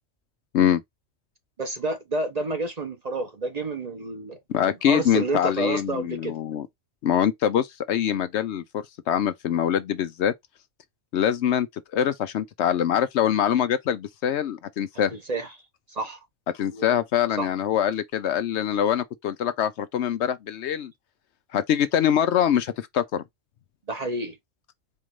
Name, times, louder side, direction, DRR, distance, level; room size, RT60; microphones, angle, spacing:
voice 1, 1.6-6.4 15.1-15.5 15.9-16.2 16.7-17.0 17.4-17.5 23.9-24.4, right 2 dB, 35° right, 0.8 m, -30 dB
voice 2, 4.5-6.7 7.0-10.3 11.1-11.7 11.9-15.2 16.5-20.9 21.5-23.2, left 9 dB, 70° left, 0.8 m, -24 dB
4.4 x 2.5 x 3.0 m
omnidirectional pair, 1.3 m